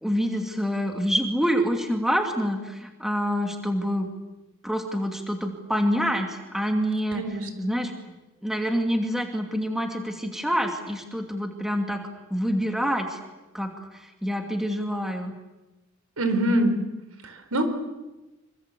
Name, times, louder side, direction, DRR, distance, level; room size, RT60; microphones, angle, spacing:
voice 1, 0.0-4.1 4.6-7.2 7.6-8.1 8.4-12.0 12.3-13.2 13.5-15.3, equal, ahead, 4 dB, 2.6 m, -27 dB
voice 2, 7.1-7.7 16.2-16.8 17.2-17.6, right 1 dB, 90° right, 8 dB, 4.4 m, -24 dB
27.0 x 25.0 x 8.5 m, 1.1 s
head